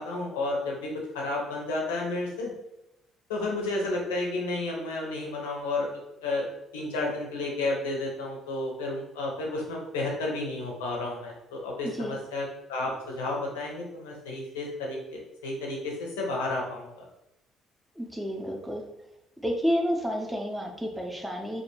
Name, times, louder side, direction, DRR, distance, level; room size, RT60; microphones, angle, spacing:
voice 1, 0.0-2.5 3.3-5.9 6.2-6.4 6.7-17.0, left 2 dB, 80° left, -1 dB, 0.5 m, -32 dB
voice 2, 11.8-12.2 18.0-18.8 19.4-21.6, equal, 5° right, 1 dB, 0.5 m, -30 dB
2.2 x 2.2 x 2.9 m, 0.88 s
hypercardioid pair, 50°, 0 cm